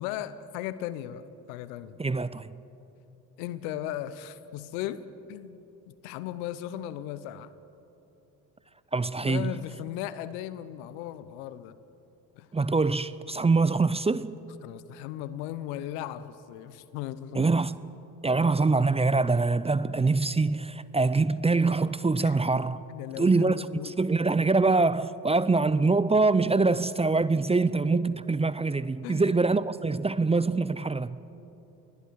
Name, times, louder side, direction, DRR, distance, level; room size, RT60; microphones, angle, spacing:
voice 1, 0.0-2.0 3.4-7.5 9.3-11.8 12.3-12.5 14.6-17.5 22.2-22.4 22.9-23.9 29.0-29.3, left 12 dB, 80° left, 1.0 m, -37 dB
voice 2, 2.0-2.5 8.9-9.5 12.5-14.3 17.3-17.8 18.2-22.8 23.2-31.2, right 3 dB, 15° right, 0.6 m, -24 dB
29.5 x 20.5 x 4.8 m
hypercardioid pair, 60°, 44 cm